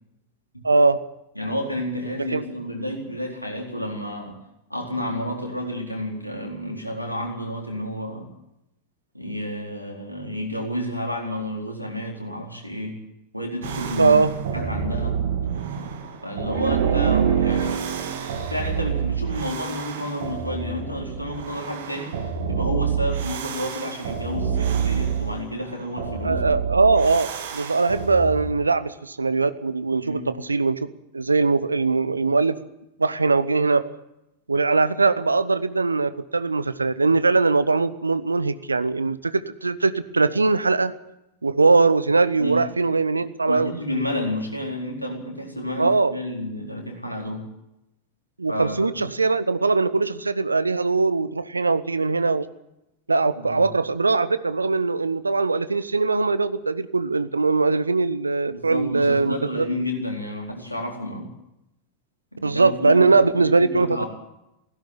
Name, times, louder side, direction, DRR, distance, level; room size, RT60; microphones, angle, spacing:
voice 1, 0.6-1.0 2.3-2.4 14.0-14.3 26.2-30.9 31.1-32.6 33.0-33.9 34.5-40.9 41.4-43.7 45.8-46.1 48.4-52.5 53.1-59.6 62.4-64.0, right 3 dB, 80° right, 15 dB, 0.9 m, -21 dB
voice 2, 1.3-4.4 4.7-8.3 9.1-13.0 13.3-14.2 14.5-15.2 16.2-17.8 18.5-26.4 30.0-30.4 42.4-42.7 43.5-47.5 48.5-49.1 53.4-53.7 58.5-61.3 62.3-64.1, left 1 dB, 90° left, -1 dB, 4.3 m, -30 dB
sound 1, 13.6-28.5, right 7 dB, 55° right, 2.2 m, -27 dB
16.5 x 16.0 x 9.6 m, 0.88 s
figure-of-eight pair, 90°, 0 cm